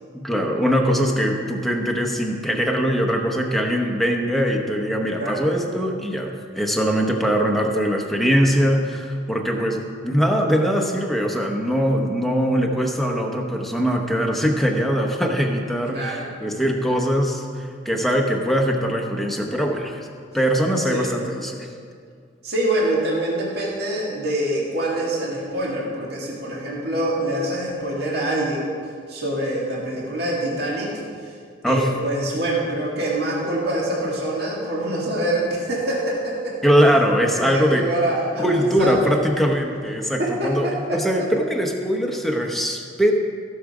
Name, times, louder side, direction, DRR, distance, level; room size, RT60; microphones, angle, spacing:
voice 1, 0.1-20.0 20.3-21.7 31.6-31.9 36.6-37.8 38.4-43.2, equal, ahead, 1 dB, 1.0 m, -21 dB
voice 2, 5.2-5.5 15.9-16.3 20.9-21.1 22.4-28.7 29.1-31.3 31.7-36.6 37.4-38.5 38.8-39.1 40.0-41.3, right 1 dB, 60° right, -4 dB, 2.1 m, -25 dB
16.0 x 6.4 x 4.9 m, 2.2 s
head